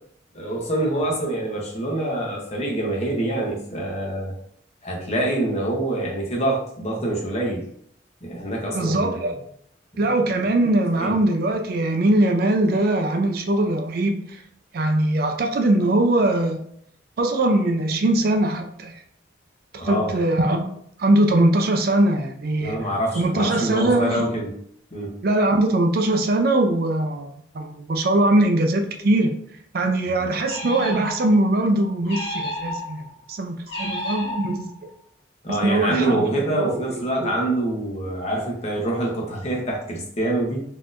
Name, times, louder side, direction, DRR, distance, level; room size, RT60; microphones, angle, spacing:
voice 1, 0.3-4.3 4.8-7.6 8.2-9.2 10.9-11.1 19.8-20.2 22.6-24.5 24.9-25.1 35.4-40.6, right 1 dB, 35° left, -2 dB, 0.9 m, -25 dB
voice 2, 8.7-9.4 10.0-14.4 14.7-16.6 17.2-19.0 19.7-20.7 21.0-22.8 23.1-24.3 25.2-29.3 29.7-33.0 33.3-34.6 35.5-36.7 37.2-37.3, right 1 dB, 55° right, 4 dB, 0.4 m, -21 dB
sound 1, 30.4-31.5 32.0-33.1 33.7-34.9, left 1 dB, 65° left, 1.2 m, -31 dB
4.0 x 2.8 x 2.5 m, 0.67 s
head